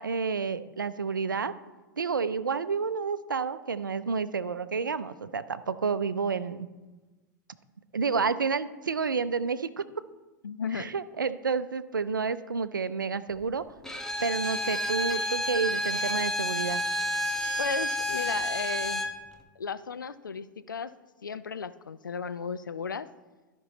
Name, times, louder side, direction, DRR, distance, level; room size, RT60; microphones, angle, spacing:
voice 1, 0.0-1.5 2.0-6.7 7.9-9.8 10.7-13.6 14.2-16.8, right 5 dB, 85° right, 14 dB, 0.5 m, -30 dB
voice 2, 10.4-10.9 17.6-19.0 19.6-20.9 21.2-23.1, left 5 dB, 80° left, 13 dB, 0.4 m, -35 dB
Bowed string instrument, 13.8-19.2, left 1 dB, 5° left, 1.0 m, -30 dB
13.0 x 5.4 x 4.0 m, 1.2 s
figure-of-eight pair, 90°, 10 cm